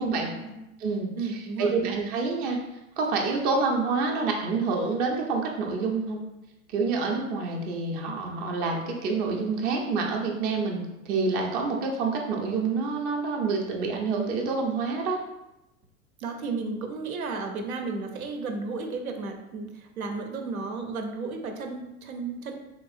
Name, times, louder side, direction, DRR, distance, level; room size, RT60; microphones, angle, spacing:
voice 1, 0.0-0.6 1.2-1.9 16.2-22.5, right 4 dB, 80° right, 4 dB, 0.6 m, -33 dB
voice 2, 1.6-2.6 3.0-6.2 6.7-15.2, right 4 dB, 25° right, 0 dB, 0.4 m, -27 dB
3.4 x 2.8 x 2.4 m, 0.94 s
hypercardioid pair, 95°, 42 cm